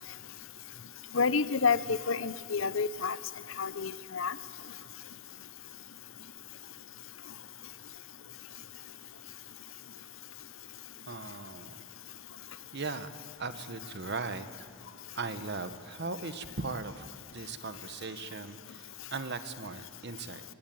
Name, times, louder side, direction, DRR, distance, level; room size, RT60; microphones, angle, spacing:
voice 1, 1.1-3.2 3.6-4.3, left 5 dB, 65° left, 16 dB, 0.7 m, -29 dB
voice 2, 11.1-11.8 12.7-13.1 13.4-14.7 15.1-17.1 17.3-20.4, right 3 dB, 55° right, 11 dB, 1.3 m, -38 dB
27.5 x 17.0 x 9.3 m, 2.2 s
head